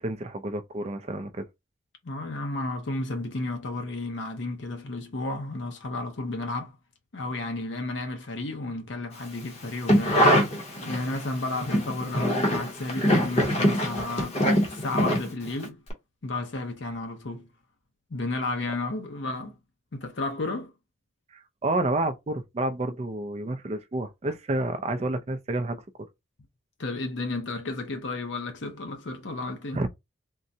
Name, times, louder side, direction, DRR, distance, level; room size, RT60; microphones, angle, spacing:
voice 1, 0.0-1.5 21.3-25.8 29.7-29.9, right 2 dB, 30° right, 0.4 m, -29 dB
voice 2, 2.0-6.8 7.1-10.5 10.8-15.8 16.2-17.5 18.1-19.6 19.9-20.7 26.8-29.8, left 2 dB, 65° left, 0.7 m, -32 dB
sound 1, 9.6-11.2 11.6-15.6 15.9-16.0, equal, 35° left, 0.8 m, -23 dB
3.7 x 2.1 x 2.7 m
head